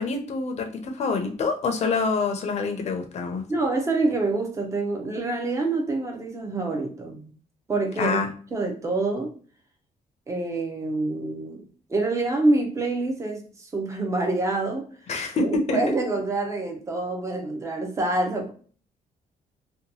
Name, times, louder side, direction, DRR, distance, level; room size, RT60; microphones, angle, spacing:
voice 1, 0.0-3.4 8.0-8.3 15.1-15.8, left 4 dB, 45° left, 5 dB, 0.5 m, -26 dB
voice 2, 3.5-7.3 7.7-8.2 8.5-9.3 10.3-11.6 11.9-14.9 15.4-18.5, right 2 dB, 20° right, 2 dB, 0.5 m, -26 dB
2.8 x 2.2 x 2.8 m, 0.43 s
wide cardioid pair, 165°, 15 cm